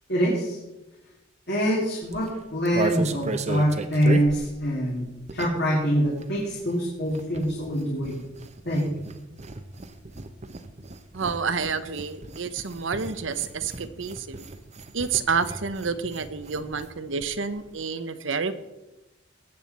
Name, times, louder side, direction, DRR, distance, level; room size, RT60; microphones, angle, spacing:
voice 1, 0.1-0.6 1.5-8.2 8.6-8.9, equal, 60° left, -4 dB, 2.6 m, -25 dB
sound 1, 2.0-5.8 6.0-16.9 17.2-17.3 17.5-17.8, right 2 dB, 35° right, 0.8 m, -36 dB
voice 2, 11.1-14.5 14.9-18.6, right 5 dB, 75° right, 12 dB, 0.8 m, -29 dB
19.5 x 7.8 x 4.2 m, 1.0 s
head